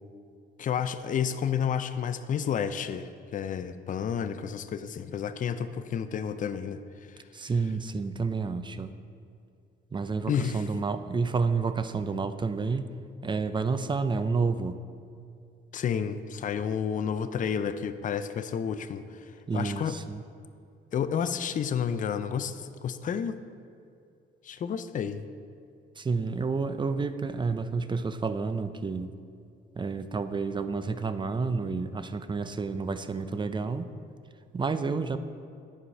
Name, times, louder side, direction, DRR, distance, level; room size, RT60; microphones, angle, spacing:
voice 1, 0.6-6.8 7.1-7.2 10.3-10.7 15.7-20.0 20.9-23.4 24.4-25.3, left 7 dB, 40° left, 11 dB, 0.4 m, -31 dB
voice 2, 7.3-8.9 9.9-12.9 13.2-14.8 19.5-20.2 26.0-29.1 29.8-33.9 34.5-35.2, right 4 dB, 25° right, 11 dB, 0.4 m, -30 dB
8.7 x 4.8 x 5.3 m, 2.4 s
cardioid pair, 90°, 20 cm